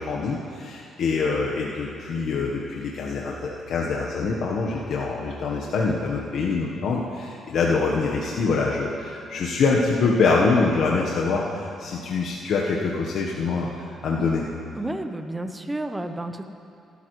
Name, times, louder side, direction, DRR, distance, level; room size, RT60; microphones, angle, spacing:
voice 1, 0.0-11.4 11.8-13.7 14.0-14.4, left 4 dB, 70° left, -2 dB, 1.1 m, -24 dB
voice 2, 14.8-16.5, right 1 dB, 15° right, 7 dB, 0.8 m, -31 dB
17.0 x 12.5 x 3.1 m, 2.5 s
cardioid pair, 90°, 0 cm